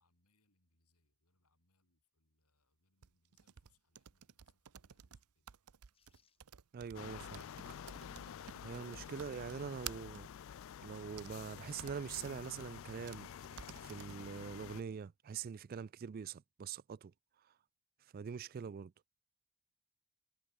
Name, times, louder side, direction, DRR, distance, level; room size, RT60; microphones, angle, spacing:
voice 1, 0.0-5.5, left 3 dB, 90° left, 7.1 m, -80 dB
sound 1, 3.0-10.2 10.9-11.3 11.8-12.7 13.1-13.2 13.4-14.2, right 9 dB, 85° right, 0.7 m, -52 dB
sound 2, 5.9-6.4 7.1-7.2 7.4-8.2 8.8-8.9 9.2-10.2 11.5-12.4 13.3-13.4 13.6-14.3 14.6-14.7, left 7 dB, 25° left, 4.0 m, -73 dB
voice 2, 6.7-7.4 8.6-10.3 10.8-13.3 13.8-17.1 18.1-18.9, right 6 dB, 40° right, 0.3 m, -44 dB
sound 3, 6.9-14.8, left 8 dB, 60° left, 0.3 m, -50 dB
head